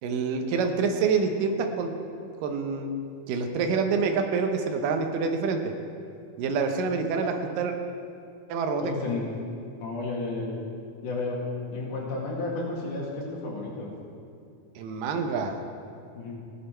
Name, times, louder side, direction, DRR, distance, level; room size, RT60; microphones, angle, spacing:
voice 1, 0.0-1.9 2.4-2.9 3.3-5.7 6.4-7.7 8.5-8.9 14.8-15.6, right 5 dB, 85° right, 4 dB, 2.6 m, -27 dB
voice 2, 8.8-9.3 9.8-10.5 11.0-11.4 11.7-13.9 16.1-16.4, left 3 dB, 70° left, -3 dB, 3.5 m, -32 dB
16.5 x 10.0 x 4.4 m, 2.4 s
omnidirectional pair, 3.8 m